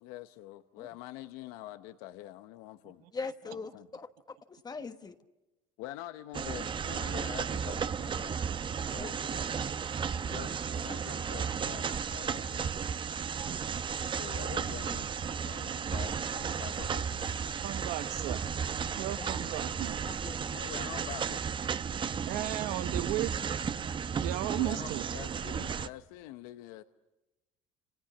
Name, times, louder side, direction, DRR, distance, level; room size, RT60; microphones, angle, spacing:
voice 1, 0.0-3.0 3.4-3.9 5.8-8.5 8.9-9.7 10.2-12.8 14.1-15.1 15.4-17.4 20.5-21.5 24.5-26.8, left 15 dB, 90° left, 11 dB, 0.9 m, -46 dB
voice 2, 3.1-5.1 9.0-9.1 9.4-9.5 10.3-10.4 19.2-19.3 20.0-20.6, left 4 dB, 25° left, 8 dB, 1.3 m, -42 dB
sound 1, 6.3-25.9, right 7 dB, 35° right, 0.9 m, -34 dB
voice 3, 17.6-18.4 19.0-20.0 22.3-23.3 24.2-25.0, right 16 dB, 80° right, 12 dB, 1.2 m, -34 dB
30.0 x 28.0 x 7.2 m, 1.1 s
cardioid pair, 105°, 15 cm